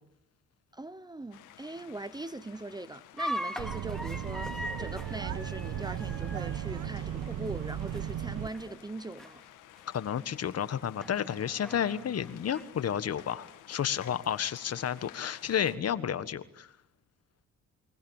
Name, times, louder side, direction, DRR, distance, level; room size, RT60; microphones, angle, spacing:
voice 1, 0.7-9.4, right 2 dB, 15° right, 0.9 m, -41 dB
sound 1, 1.3-15.8, left 13 dB, 90° left, 2.0 m, -54 dB
sound 2, 3.2-8.3 8.5-8.9 9.2-9.3 10.0-10.1 11.0-12.6, equal, ahead, 2.4 m, -40 dB
sound 3, 3.6-8.5, right 10 dB, 75° right, 1.4 m, -36 dB
voice 2, 9.9-16.7, left 9 dB, 55° left, 1.6 m, -31 dB
28.0 x 24.0 x 7.3 m
cardioid pair, 90°, 30 cm